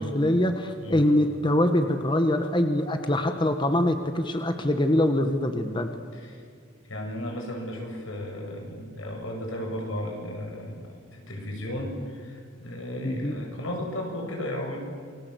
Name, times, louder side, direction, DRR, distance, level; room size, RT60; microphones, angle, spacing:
voice 1, 0.0-5.9 13.0-13.3, left 1 dB, 25° left, 6 dB, 1.4 m, -24 dB
voice 2, 6.8-14.8, left 1 dB, 85° left, 1 dB, 7.7 m, -34 dB
28.5 x 22.5 x 8.2 m, 2.2 s
head